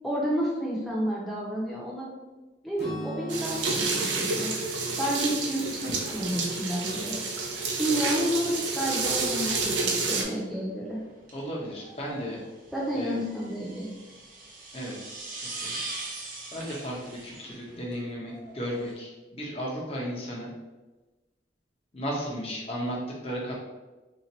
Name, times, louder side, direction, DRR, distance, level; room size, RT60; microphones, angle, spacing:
voice 1, 0.0-2.1 2.6-4.5 5.0-7.1 7.8-11.0 12.7-13.9, equal, ahead, -6 dB, 0.7 m, -30 dB
Acoustic guitar / Strum, 2.8-6.7, right 2 dB, 65° left, 0.9 m, -42 dB
sound 1, 3.3-10.2, right 3 dB, 90° right, 0.6 m, -29 dB
sound 2, 5.6-18.9, right 2 dB, 50° right, 0.6 m, -43 dB
voice 2, 11.3-12.4 12.9-13.2 14.7-15.0 15.3-15.8 16.5-20.5 21.9-23.5, equal, 35° left, -3 dB, 0.8 m, -34 dB
2.8 x 2.5 x 4.1 m, 1.2 s
head